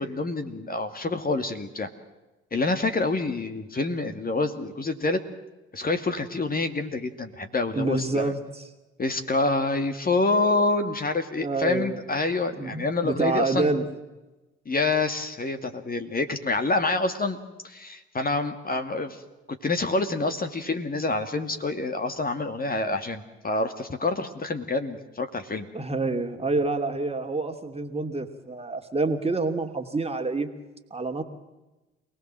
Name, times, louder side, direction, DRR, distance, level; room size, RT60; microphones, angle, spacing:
voice 1, 0.0-1.9 2.5-5.2 5.7-8.3 9.0-13.7 14.7-17.4 17.6-19.2 19.5-25.7, left 3 dB, 25° left, 7 dB, 2.4 m, -27 dB
voice 2, 7.7-8.6 11.4-12.0 12.6-13.9 25.7-30.5 30.9-31.2, right 3 dB, 20° right, 5 dB, 2.7 m, -27 dB
28.5 x 19.0 x 7.7 m, 1.1 s
figure-of-eight pair, 55°, 33 cm